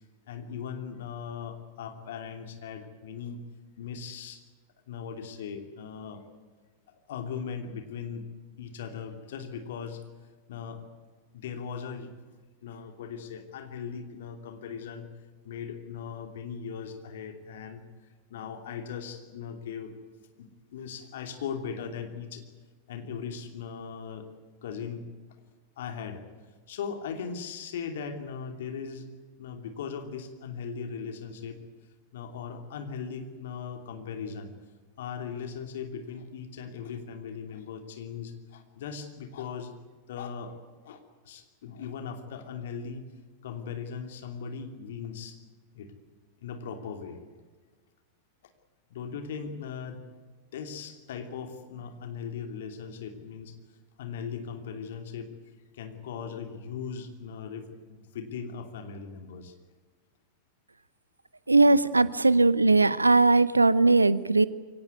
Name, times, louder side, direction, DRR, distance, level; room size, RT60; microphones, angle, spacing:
voice 1, 0.3-3.4 3.8-4.4 4.9-6.2 6.9-8.3 8.6-10.0 10.5-10.8 11.3-12.1 12.6-15.1 15.4-17.8 18.3-19.9 20.4-22.4 22.9-24.3 24.6-25.1 25.8-26.2 26.7-29.1 29.4-31.6 32.1-34.5 35.0-39.7 40.1-40.6 40.8-43.1 43.4-45.4 45.7-45.9 46.4-47.2 48.9-50.0 50.5-53.5 54.0-55.3 55.7-59.5, left 6 dB, 60° left, 6 dB, 2.9 m, -38 dB
voice 2, 61.5-64.5, right 3 dB, 80° right, 18 dB, 0.8 m, -20 dB
23.5 x 18.0 x 9.5 m, 1.4 s
figure-of-eight pair, 90°, 0 cm